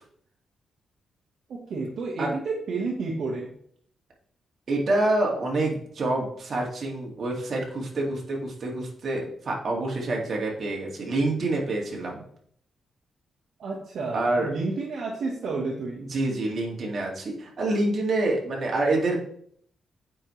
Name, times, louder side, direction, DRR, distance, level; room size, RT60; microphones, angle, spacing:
voice 1, 1.7-3.5 13.6-16.0, right 3 dB, 70° right, -3 dB, 1.3 m, -30 dB
voice 2, 4.7-12.2 14.1-14.5 16.0-19.2, right 2 dB, 50° right, -1 dB, 2.2 m, -27 dB
8.7 x 5.3 x 3.2 m, 0.64 s
cardioid pair, 95°, 0 cm